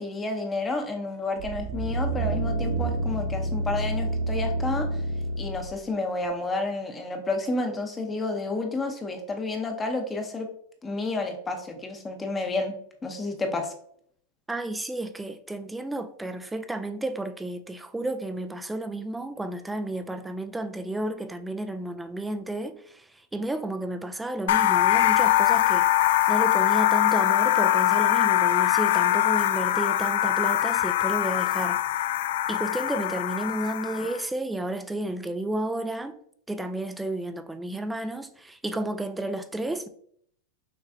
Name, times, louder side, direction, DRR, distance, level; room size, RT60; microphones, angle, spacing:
voice 1, 0.0-5.0 5.4-10.5 10.8-12.7 13.0-13.7, left 3 dB, 15° left, 0.8 m, -30 dB
sound 1, 1.4-5.8 6.3-6.4, right 2 dB, 60° right, 0.5 m, -28 dB
voice 2, 14.5-25.9 26.3-31.8 32.5-36.2 36.5-39.9, right 1 dB, 5° right, 0.4 m, -32 dB
sound 2, 24.5-34.2, left 14 dB, 70° left, 0.3 m, -22 dB
6.1 x 3.1 x 2.7 m
supercardioid pair, 140°, 0 cm